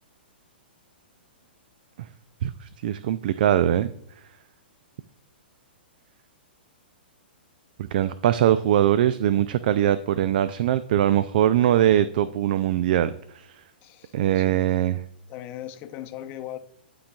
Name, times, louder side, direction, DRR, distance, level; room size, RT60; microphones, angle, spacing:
voice 1, 2.4-3.9 7.9-13.5 14.1-15.0, right 11 dB, 55° right, 14 dB, 0.3 m, -22 dB
voice 2, 13.8-14.6 15.3-16.6, left 12 dB, 35° left, 7 dB, 0.7 m, -38 dB
11.5 x 3.9 x 2.3 m, 0.73 s
hypercardioid pair, 125°, 6 cm